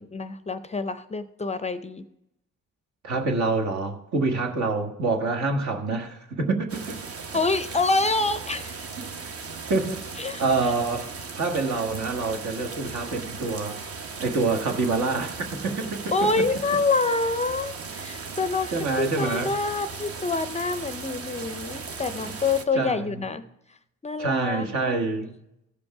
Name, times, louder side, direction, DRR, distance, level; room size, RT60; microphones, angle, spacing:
voice 1, 0.0-2.0 7.3-8.9 10.2-10.4 16.1-23.4 24.0-25.0, left 3 dB, 20° left, 12 dB, 0.5 m, -27 dB
voice 2, 3.0-7.0 9.0-9.1 9.7-10.0 10.4-13.8 14.2-16.0 18.7-19.5 22.2-22.3 22.7-23.3 24.2-25.3, right 3 dB, 65° right, 3 dB, 1.5 m, -26 dB
sound 1, 6.7-22.6, right 4 dB, 50° right, 0.9 m, -37 dB
15.0 x 5.3 x 4.7 m, 0.82 s
cardioid pair, 90°, 30 cm